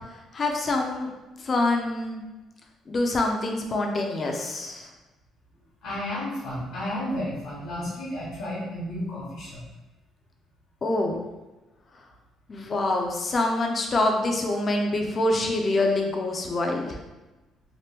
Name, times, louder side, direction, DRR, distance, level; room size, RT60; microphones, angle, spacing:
voice 1, 0.3-1.1 1.4-2.2 2.9-4.9 10.8-11.2 12.5-17.0, left 2 dB, 35° left, 2 dB, 0.5 m, -25 dB
voice 2, 5.8-9.6, left 1 dB, 80° left, -7 dB, 1.0 m, -32 dB
2.9 x 2.1 x 3.4 m, 1.1 s
cardioid pair, 105°, 0 cm